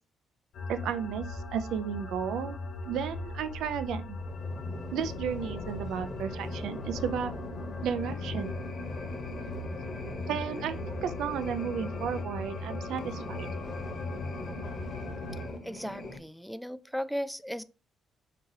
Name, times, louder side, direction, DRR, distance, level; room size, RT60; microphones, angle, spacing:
sound 1, 0.5-15.5, left 2 dB, 70° left, 0.9 m, -39 dB
voice 1, 0.7-2.6 2.9-4.2 4.9-7.3 7.8-8.6 10.3-10.8 11.0-13.5, right 8 dB, 80° right, 0.4 m, -33 dB
sound 2, 4.1-16.2, left 2 dB, 35° left, 0.9 m, -41 dB
voice 2, 15.6-17.6, equal, ahead, 0.3 m, -36 dB
3.6 x 2.8 x 4.7 m
cardioid pair, 90°, 0 cm